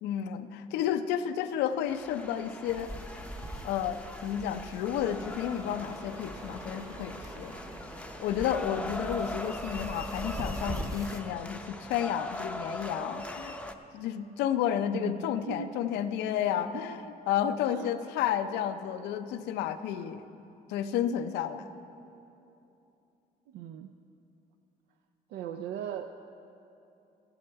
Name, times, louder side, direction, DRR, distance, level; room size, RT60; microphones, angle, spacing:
voice 1, 0.0-3.2 3.6-7.5 8.2-13.6 13.9-20.2 20.7-21.7, left 9 dB, 90° left, 10 dB, 0.6 m, -31 dB
sound 1, 1.9-13.7, left 1 dB, 5° left, 0.6 m, -41 dB
sound 2, 2.7-11.2, right 1 dB, 20° right, 0.9 m, -42 dB
voice 2, 8.7-9.1 14.9-15.7 16.7-16.9 17.7-18.0 23.5-23.9 25.3-26.1, right 9 dB, 80° right, 7 dB, 0.5 m, -39 dB
14.0 x 10.5 x 4.6 m, 2.8 s
cardioid pair, 110°, 17 cm